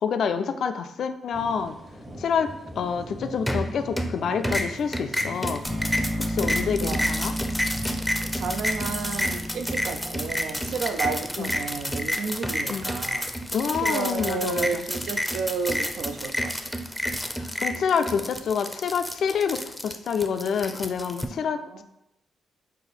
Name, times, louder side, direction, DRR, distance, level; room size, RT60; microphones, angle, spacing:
voice 1, 0.0-1.8 2.2-5.6 6.2-7.3 11.4-11.5 12.7-12.8 13.5-14.9 17.4-21.6, left 6 dB, 70° left, 9 dB, 0.3 m, -27 dB
sound 1, 1.3-8.3, equal, 35° right, 1.2 m, -42 dB
sound 2, 3.5-4.2 4.4-21.3, equal, 5° left, 0.5 m, -29 dB
sound 3, 5.7-11.7, equal, 60° right, 1.5 m, -33 dB
voice 2, 8.3-13.3 13.8-16.8 21.5-21.8, right 4 dB, 75° right, 7 dB, 0.4 m, -32 dB
4.9 x 2.1 x 4.1 m, 0.84 s
supercardioid pair, 50°, 0 cm